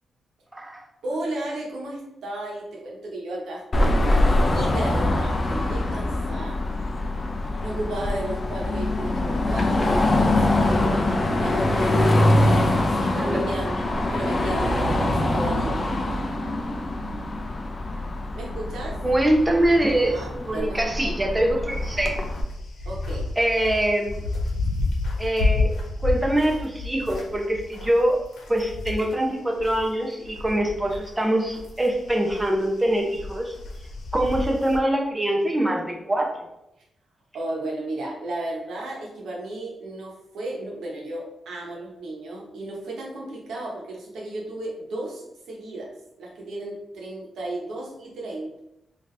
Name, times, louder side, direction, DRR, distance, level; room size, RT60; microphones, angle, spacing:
voice 1, 0.5-0.8 13.2-13.5 19.0-22.2 23.4-24.2 25.2-25.7 26.0-28.2 28.5-33.5 34.1-36.3, right 1 dB, 10° right, 1 dB, 0.7 m, -23 dB
voice 2, 1.0-4.2 4.5-6.6 7.6-13.8 14.1-15.8 18.4-19.0 20.1-20.8 22.8-23.3 37.3-45.9 46.2-48.6, right 1 dB, 90° right, -2 dB, 1.1 m, -34 dB
Car passing by / Traffic noise roadway noise / Engine, 3.7-22.4, left 1 dB, 30° left, 0.5 m, -24 dB
sound 1, 21.7-29.9 30.2-34.8, left 2 dB, 80° left, 0.9 m, -30 dB
3.7 x 2.8 x 3.2 m, 0.86 s
wide cardioid pair, 115°, 0 cm